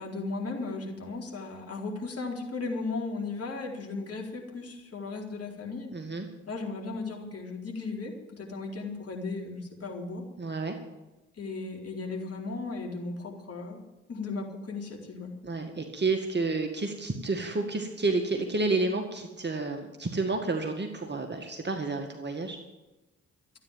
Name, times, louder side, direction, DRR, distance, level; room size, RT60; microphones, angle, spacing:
voice 1, 0.0-5.9 6.5-10.2 11.4-13.8 14.1-15.3, left 3 dB, 45° left, 0 dB, 4.3 m, -36 dB
voice 2, 5.9-6.3 10.4-10.8 15.4-22.6, right 3 dB, 30° right, 4 dB, 2.0 m, -30 dB
13.5 x 9.3 x 9.2 m, 1.0 s
hypercardioid pair, 40°, 34 cm